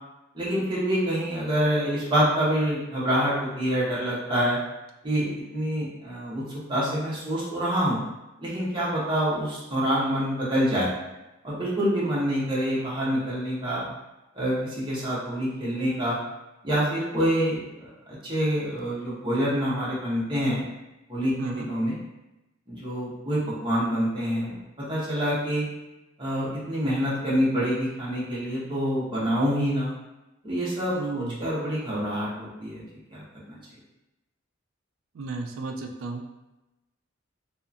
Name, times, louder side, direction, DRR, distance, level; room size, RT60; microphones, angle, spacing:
voice 1, 0.3-4.6 5.0-6.4 6.7-8.0 8.4-10.9 11.4-13.9 14.3-16.2 16.6-20.6 21.1-22.0 22.7-25.6 26.2-29.9 30.4-32.8 33.1-33.6, equal, 25° right, -8 dB, 0.9 m, -26 dB
voice 2, 30.9-31.4 35.1-36.2, right 3 dB, 75° right, 4 dB, 0.4 m, -33 dB
2.7 x 2.4 x 2.5 m, 0.98 s
head